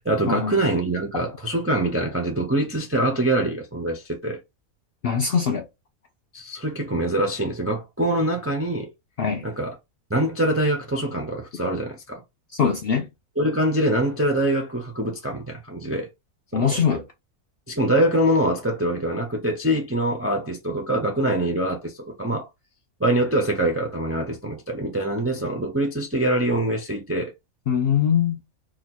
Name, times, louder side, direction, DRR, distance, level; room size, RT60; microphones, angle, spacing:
voice 1, 0.0-4.4 6.3-8.9 9.4-9.7 10.1-12.2 13.4-16.1 16.5-16.8 17.7-22.5 23.0-27.3, right 1 dB, 20° right, 0.3 m, -24 dB
voice 2, 5.0-5.6 9.2-9.5 12.5-13.1 16.5-17.0 27.7-28.4, left 7 dB, 65° left, 0.6 m, -22 dB
2.8 x 2.3 x 4.2 m
omnidirectional pair, 1.5 m